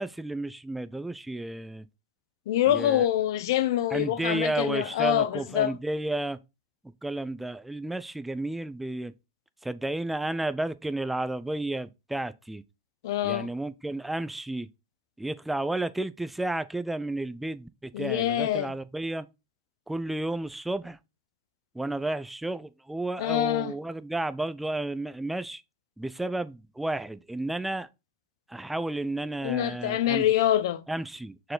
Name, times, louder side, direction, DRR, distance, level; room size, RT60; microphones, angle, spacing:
voice 1, 0.0-1.9 2.7-3.0 3.9-6.4 7.0-9.1 9.6-12.6 13.2-14.7 15.2-19.3 19.9-21.0 21.7-25.6 26.0-27.9 28.5-30.3 30.9-31.5, right 2 dB, 5° right, 0.5 m, -32 dB
voice 2, 2.5-5.8 13.0-13.5 17.9-18.8 23.2-23.7 29.4-30.8, left 12 dB, 60° left, 0.9 m, -25 dB
6.3 x 4.6 x 3.9 m
hypercardioid pair, 115°, 2 cm